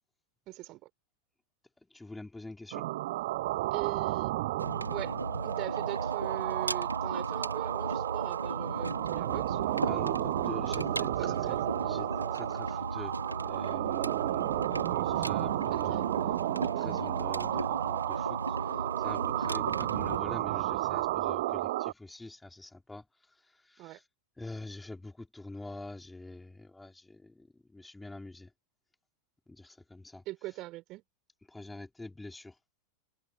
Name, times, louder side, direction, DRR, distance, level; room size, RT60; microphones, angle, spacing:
voice 1, 0.5-0.9 3.7-4.3 4.9-5.1 5.4-10.1 11.2-11.6 15.7-16.1 20.6-20.9 23.8-24.0 30.3-31.0, right 18 dB, 40° right, 5.5 m, -41 dB
voice 2, 1.8-2.9 9.8-13.2 13.4-16.0 16.6-24.0 24.4-28.5 29.5-30.2 31.5-32.6, left 2 dB, 5° left, 3.7 m, -46 dB
sound 1, 2.7-21.9, right 17 dB, 55° right, 1.0 m, -32 dB
sound 2, 4.6-20.2, right 2 dB, 85° right, 2.7 m, -37 dB
figure-of-eight pair, 90°, 0 cm